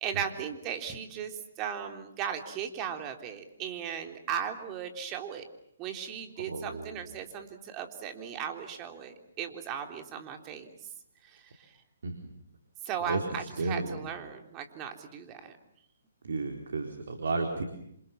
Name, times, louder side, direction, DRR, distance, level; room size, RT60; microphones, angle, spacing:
voice 1, 0.0-5.5 5.8-10.7 11.2-11.8 12.8-15.5, right 8 dB, 25° right, 5 dB, 3.6 m, -37 dB
voice 2, 6.4-7.1 12.0-12.3 13.1-14.0 16.2-17.6, right 3 dB, 70° right, 4 dB, 4.0 m, -33 dB
28.0 x 27.0 x 7.4 m, 0.74 s
figure-of-eight pair, 135°, 0 cm